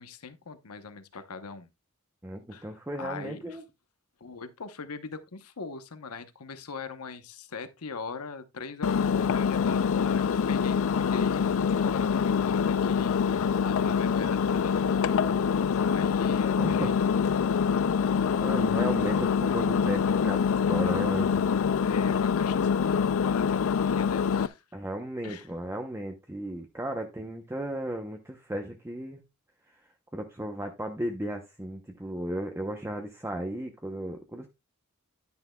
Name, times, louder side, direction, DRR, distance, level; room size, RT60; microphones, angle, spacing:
voice 1, 0.0-1.7 2.5-2.7 3.0-3.6 4.2-15.2 15.8-16.9 18.0-18.3 21.8-24.6 25.2-25.5, left 4 dB, 80° left, 1.0 m, -41 dB
voice 2, 2.2-3.6 16.6-16.9 18.4-21.5 24.7-29.2 30.1-34.5, right 1 dB, 10° right, 0.7 m, -35 dB
Engine, 8.8-24.5, left 6 dB, 65° left, 0.4 m, -25 dB
10.5 x 9.4 x 2.3 m
head